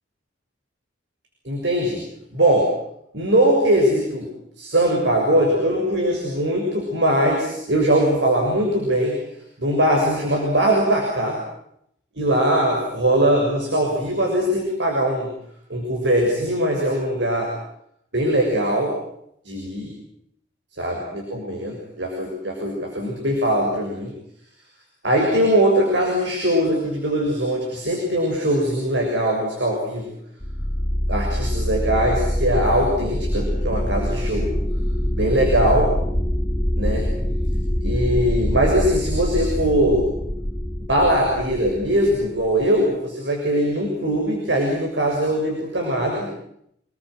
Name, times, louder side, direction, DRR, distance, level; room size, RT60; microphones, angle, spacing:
voice 1, 1.4-2.0 2.3-2.7 3.1-4.3 4.6-9.1 9.6-11.4 12.2-15.3 15.7-17.5 18.1-18.9 19.4-19.9 20.8-24.1 25.0-30.1 31.1-34.5 35.2-35.9 36.8-37.0 37.8-40.1 40.9-46.3, right 1 dB, 85° right, 0 dB, 6.7 m, -21 dB
sound 1, 30.4-42.7, equal, 15° left, 5.4 m, -24 dB
28.5 x 20.5 x 7.9 m, 0.73 s
head